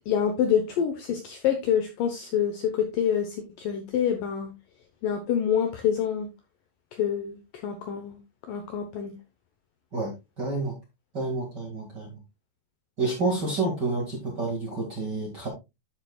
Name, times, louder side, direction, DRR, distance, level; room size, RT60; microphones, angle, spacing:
voice 1, 0.1-4.5 5.0-6.3 7.0-8.2 8.5-9.1, left 8 dB, 75° left, 5 dB, 2.1 m, -26 dB
voice 2, 9.9-10.8 11.1-12.2 13.0-15.5, right 3 dB, 40° right, -1 dB, 1.7 m, -29 dB
11.5 x 7.2 x 2.3 m, 0.23 s
omnidirectional pair, 4.9 m